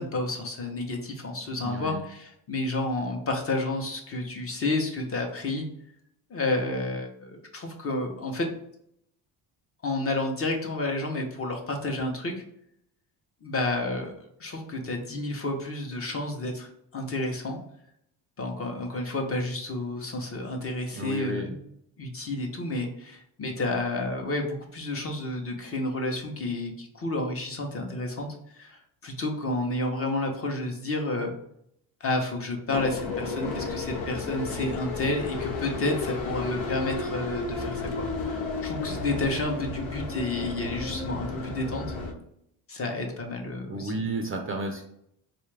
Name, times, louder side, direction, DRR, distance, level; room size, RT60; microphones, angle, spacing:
voice 1, 0.0-5.6 6.3-8.5 9.8-12.3 13.4-14.1 14.4-17.6 18.4-21.6 22.0-28.3 28.5-28.8 29.0-31.3 32.0-41.9 42.7-43.9, left 2 dB, 30° left, 3 dB, 0.7 m, -30 dB
voice 2, 1.6-2.0 20.9-21.5 43.7-44.8, right 2 dB, 30° right, 3 dB, 0.4 m, -32 dB
sound 1, 32.7-42.1, left 3 dB, 85° left, 0.8 m, -33 dB
3.7 x 2.4 x 3.2 m, 0.74 s
cardioid pair, 115°, 45 cm